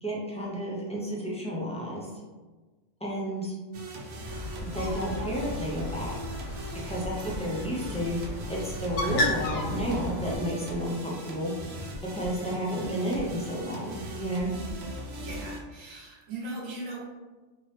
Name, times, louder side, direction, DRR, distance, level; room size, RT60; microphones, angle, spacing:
voice 1, 0.0-2.1 3.0-3.5 4.6-6.1 6.8-11.5 12.0-14.5, equal, 10° left, -5 dB, 0.3 m, -31 dB
sound 1, 3.7-15.6, equal, 65° right, 0.8 m, -39 dB
Bird, 4.3-10.4, equal, 65° left, 0.9 m, -34 dB
voice 2, 15.2-17.0, right 2 dB, 85° right, -3 dB, 1.2 m, -39 dB
3.0 x 2.9 x 3.2 m, 1.2 s
omnidirectional pair, 1.3 m